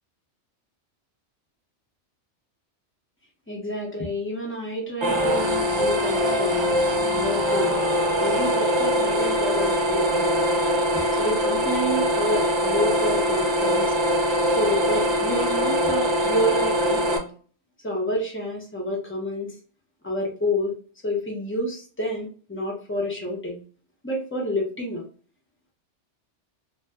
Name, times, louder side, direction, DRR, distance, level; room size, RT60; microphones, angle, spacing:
voice 1, 3.5-6.8 7.1-7.8 8.2-10.6 11.2-13.9 14.6-17.3 17.8-19.5 20.0-20.7 21.0-23.6 24.0-25.1, equal, 10° left, -2 dB, 0.9 m, -28 dB
sound 1, 5.0-17.2, equal, 35° right, 0.5 m, -22 dB
2.8 x 2.4 x 3.4 m, 0.40 s
omnidirectional pair, 1.2 m